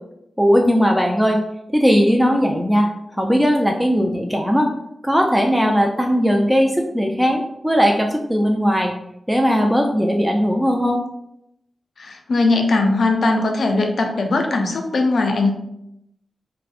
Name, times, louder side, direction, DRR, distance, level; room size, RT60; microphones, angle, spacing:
voice 1, 0.4-1.4 1.7-4.7 5.0-9.0 9.3-11.0, equal, 5° right, 2 dB, 0.3 m, -18 dB
voice 2, 12.0-15.5, left 3 dB, 70° left, 3 dB, 0.4 m, -19 dB
2.5 x 2.0 x 2.4 m, 0.80 s
cardioid pair, 45°, 0 cm